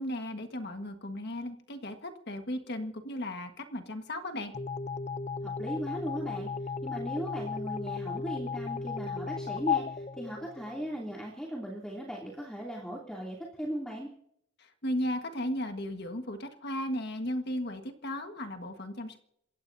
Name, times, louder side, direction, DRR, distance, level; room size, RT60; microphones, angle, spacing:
voice 1, 0.0-4.5 14.6-19.2, left 1 dB, 50° left, 5 dB, 1.5 m, -35 dB
sound 1, 4.5-11.0, left 5 dB, 30° left, 0.5 m, -35 dB
voice 2, 5.4-6.5 6.8-14.1, equal, 5° left, -3 dB, 2.8 m, -38 dB
28.0 x 15.0 x 2.7 m, 0.72 s
head